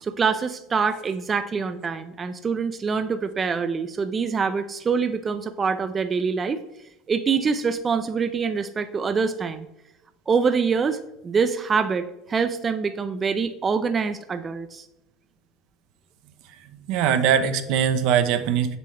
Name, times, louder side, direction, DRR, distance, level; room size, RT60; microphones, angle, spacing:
voice 1, 0.0-6.6 7.1-9.7 10.3-14.9, right 5 dB, 25° right, 9 dB, 0.5 m, -25 dB
voice 2, 16.7-18.8, right 8 dB, 70° right, 9 dB, 0.7 m, -22 dB
7.5 x 6.9 x 3.3 m, 0.92 s
supercardioid pair, 115°, 0 cm